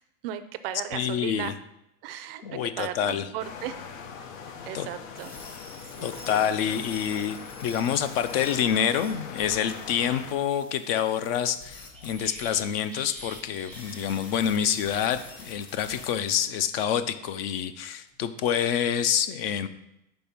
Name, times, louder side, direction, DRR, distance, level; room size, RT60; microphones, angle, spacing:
voice 1, 0.2-1.5 2.0-3.7 4.6-5.3 6.0-6.4, right 11 dB, 50° right, 11 dB, 0.4 m, -36 dB
voice 2, 0.9-1.5 2.4-3.3 4.7-4.9 6.0-19.7, left 9 dB, 50° left, 12 dB, 0.5 m, -27 dB
sound 1, 3.4-10.3, left 6 dB, 75° left, 1.0 m, -41 dB
sound 2, 5.2-16.4, left 2 dB, 30° left, 1.2 m, -47 dB
sound 3, 11.9-15.0 15.2-15.4 16.2-17.7 18.1-18.5, right 1 dB, 5° left, 0.7 m, -48 dB
5.3 x 4.3 x 5.8 m, 0.84 s
supercardioid pair, 160°, 40 cm